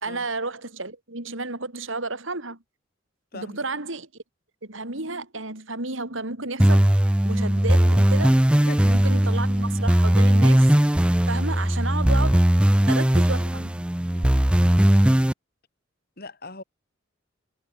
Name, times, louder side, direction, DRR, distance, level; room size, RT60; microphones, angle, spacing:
voice 1, 0.0-2.6 3.3-4.1 4.6-6.9 7.2-8.4 8.8-10.7 11.3-12.5 12.9-13.9, right 3 dB, 75° right, 4.4 m, -32 dB
voice 2, 3.3-3.7 8.6-8.9 14.1-14.4 16.2-16.6, left 2 dB, 50° left, 6.2 m, -40 dB
sound 1, 6.6-15.3, right 1 dB, 5° right, 0.3 m, -19 dB
head